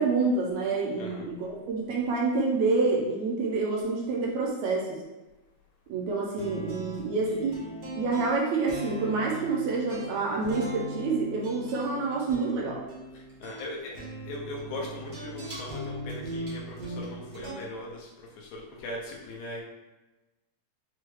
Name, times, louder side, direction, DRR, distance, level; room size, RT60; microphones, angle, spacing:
voice 1, 0.0-5.0 5.9-7.5 8.0-12.8, right 3 dB, 80° right, -2 dB, 1.8 m, -27 dB
sound 1, 6.3-17.5, right 1 dB, 60° right, 0.9 m, -39 dB
voice 2, 13.1-13.9 14.2-18.1 18.4-19.6, left 2 dB, 85° left, -1 dB, 2.2 m, -39 dB
6.2 x 2.2 x 3.1 m, 1.1 s
omnidirectional pair, 3.4 m